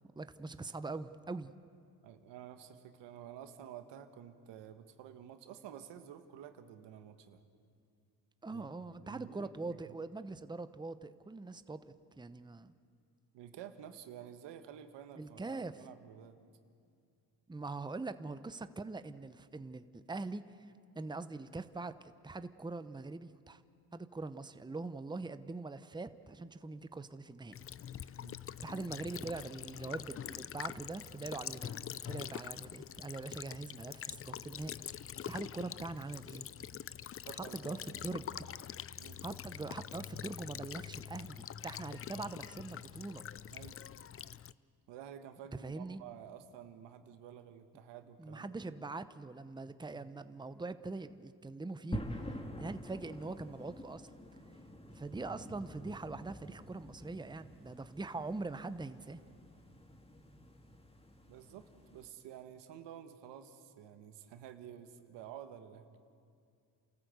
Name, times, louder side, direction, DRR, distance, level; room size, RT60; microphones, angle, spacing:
voice 1, 0.2-1.5 8.4-12.7 15.2-15.9 17.5-23.6 23.9-27.5 28.6-31.7 32.1-34.8 35.3-36.4 37.4-38.5 39.2-43.3 45.6-46.0 48.2-54.1 54.9-59.2, right 3 dB, 10° right, 12 dB, 0.8 m, -43 dB
voice 2, 2.0-7.4 8.5-9.8 13.3-16.4 28.2-28.4 37.2-37.9 39.0-39.3 43.5-43.8 44.9-48.6 49.9-50.1 61.3-66.0, right 9 dB, 85° right, 8 dB, 1.4 m, -51 dB
Child speech kid speaking / Bird vocalization bird call bird song / Stream, 27.5-44.5, left 9 dB, 35° left, 0.5 m, -45 dB
sound 1, 51.9-62.1, equal, 15° left, 2.1 m, -47 dB
29.0 x 14.0 x 8.2 m, 2.3 s
supercardioid pair, 70°, 41 cm